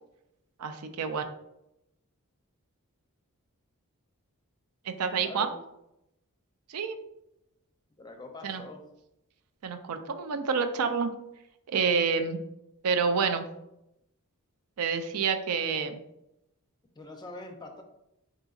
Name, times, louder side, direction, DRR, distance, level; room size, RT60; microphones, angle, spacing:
voice 1, 0.6-1.2 4.8-5.5 6.7-7.0 8.4-8.6 9.6-11.1 11.7-12.4 12.8-13.5 14.8-16.0, right 5 dB, 80° right, 7 dB, 0.4 m, -28 dB
voice 2, 5.1-5.6 8.0-8.8 16.9-17.8, left 2 dB, 20° left, 4 dB, 0.4 m, -43 dB
3.8 x 3.8 x 2.4 m, 0.84 s
head